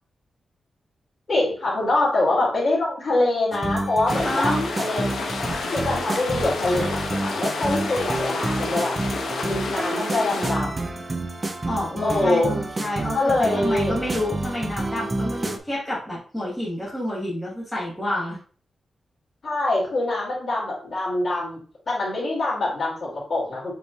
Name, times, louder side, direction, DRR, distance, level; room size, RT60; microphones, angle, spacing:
voice 1, 1.3-5.0 5.7-8.9 9.4-11.0 12.0-12.5 13.1-13.9 19.4-23.7, left 2 dB, 40° left, -5 dB, 2.3 m, -24 dB
sound 1, 3.5-15.6, right 2 dB, 20° right, 0.4 m, -29 dB
sound 2, 4.1-10.5, left 4 dB, 80° left, 0.7 m, -30 dB
voice 2, 4.2-4.7 11.6-18.4, left 1 dB, ahead, -6 dB, 1.1 m, -29 dB
6.9 x 3.1 x 2.3 m, 0.43 s
wide cardioid pair, 180°, 0 cm